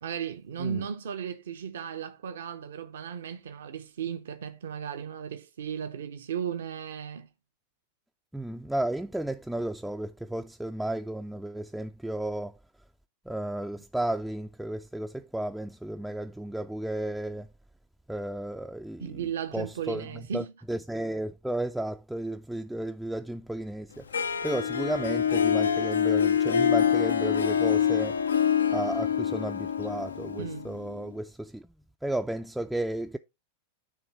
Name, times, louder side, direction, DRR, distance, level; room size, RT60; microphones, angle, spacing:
voice 1, 0.0-7.3 19.0-20.5 30.4-30.7, right 8 dB, 60° right, 0.6 m, -35 dB
voice 2, 8.3-12.5 13.3-17.5 18.1-19.2 19.5-20.1 20.3-24.1 24.4-28.2 28.7-31.6 32.0-33.2, right 1 dB, 5° right, 0.3 m, -33 dB
Harp, 24.1-31.0, left 8 dB, 70° left, 0.4 m, -26 dB
9.7 x 3.3 x 4.4 m
figure-of-eight pair, 90°, 0 cm